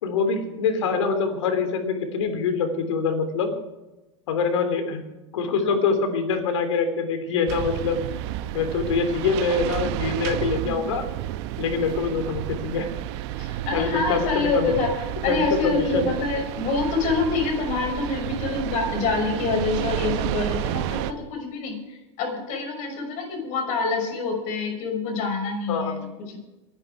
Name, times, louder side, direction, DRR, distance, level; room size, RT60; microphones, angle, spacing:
voice 1, 0.0-3.5 4.3-5.0 5.3-8.0 8.5-11.0 11.6-12.9 13.7-14.8 15.2-16.1 25.7-26.0, left 5 dB, 75° left, 7 dB, 3.3 m, -24 dB
sound 1, 7.5-21.1, right 13 dB, 65° right, 1.1 m, -31 dB
voice 2, 13.4-14.9 15.2-26.4, left 4 dB, 55° left, 4 dB, 6.1 m, -26 dB
22.5 x 10.5 x 4.7 m, 1.0 s
hypercardioid pair, 95°, 15 cm